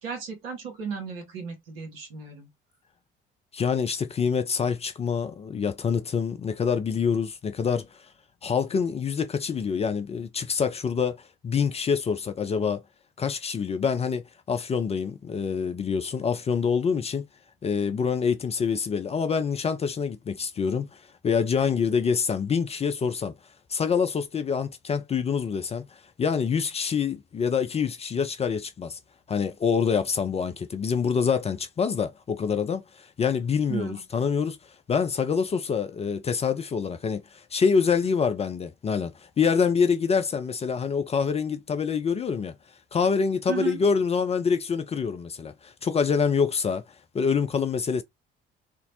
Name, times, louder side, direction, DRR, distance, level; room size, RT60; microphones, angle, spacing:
voice 1, 0.0-2.5 33.7-34.0 43.5-43.8, right 6 dB, 80° right, 0.9 m, -35 dB
voice 2, 3.5-8.1 8.4-12.8 13.2-17.2 17.6-23.3 23.7-29.0 29.3-42.5 42.9-48.0, left 6 dB, 20° left, 0.4 m, -26 dB
2.5 x 2.0 x 2.7 m
figure-of-eight pair, 50°, 29 cm